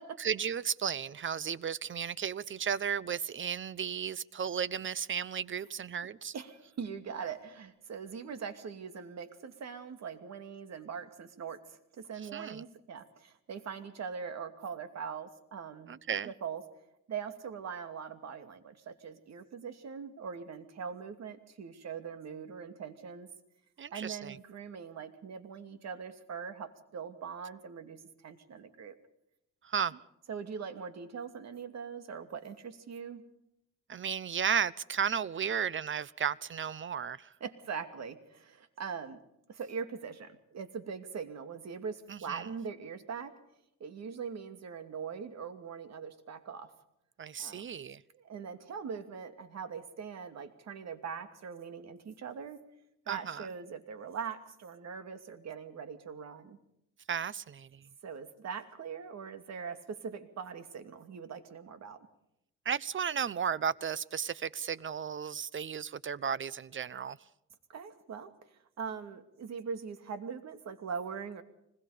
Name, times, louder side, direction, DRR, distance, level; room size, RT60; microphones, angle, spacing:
voice 1, 0.2-6.3 12.3-12.6 15.9-16.3 23.8-24.4 29.6-30.0 33.9-37.3 42.1-42.5 47.2-48.0 53.1-53.5 57.1-57.8 62.6-67.2, right 7 dB, 40° right, 0.9 m, -34 dB
voice 2, 6.3-15.9 16.2-16.6 17.1-23.3 23.9-29.0 30.3-33.3 37.4-39.2 39.5-43.4 43.8-46.7 47.4-47.6 48.1-52.6 53.1-56.6 58.0-62.1 67.7-71.4, right 6 dB, 60° right, 2.6 m, -42 dB
25.5 x 21.0 x 5.1 m
cardioid pair, 90°, 30 cm